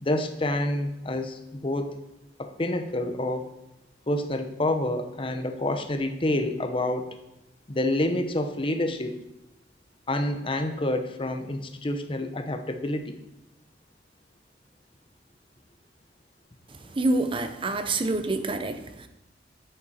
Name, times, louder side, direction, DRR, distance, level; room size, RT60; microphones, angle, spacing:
voice 1, 0.0-2.0 2.4-3.5 4.1-7.1 7.7-9.2 10.1-13.2, left 1 dB, 30° left, 7 dB, 0.8 m, -28 dB
voice 2, 16.9-19.1, right 2 dB, 30° right, 9 dB, 0.7 m, -27 dB
8.7 x 7.8 x 4.3 m, 0.88 s
head